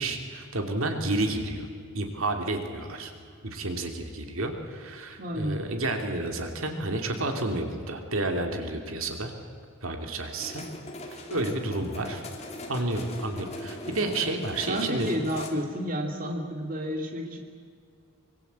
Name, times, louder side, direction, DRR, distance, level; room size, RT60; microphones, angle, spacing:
voice 1, 0.0-1.7 1.9-3.1 3.4-9.3 9.8-10.6 11.1-12.2 12.7-15.1, right 2 dB, 60° right, 4 dB, 2.9 m, -30 dB
voice 2, 5.2-5.6 14.7-17.4, equal, 40° right, 2 dB, 2.7 m, -31 dB
sound 1, 10.4-15.5, left 1 dB, 30° left, 3.0 m, -40 dB
25.0 x 24.0 x 8.2 m, 2.1 s
head